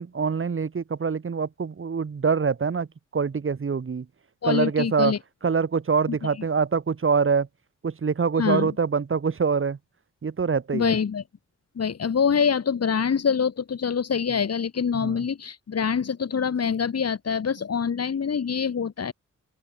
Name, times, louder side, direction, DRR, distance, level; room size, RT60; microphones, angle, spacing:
voice 1, 0.0-2.9 3.1-4.0 4.4-5.1 5.4-7.5 7.8-9.8 10.2-10.9 14.9-15.1, right 5 dB, 45° right, 4.7 m, -24 dB
voice 2, 4.4-5.2 8.4-8.7 10.7-11.2 11.8-19.1, left 6 dB, 55° left, 7.6 m, -25 dB
open air
wide cardioid pair, 135°, 29 cm